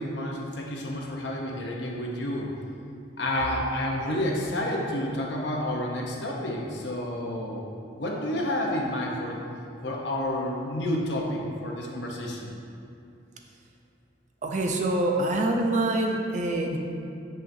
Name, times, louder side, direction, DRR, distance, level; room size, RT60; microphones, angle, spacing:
voice 1, 0.0-2.5 3.2-7.6 7.9-9.4 9.8-12.6, left 1 dB, 65° left, -2 dB, 0.9 m, -30 dB
voice 2, 14.4-16.8, right 2 dB, 40° right, 2 dB, 0.5 m, -25 dB
7.5 x 5.6 x 2.7 m, 2.6 s
head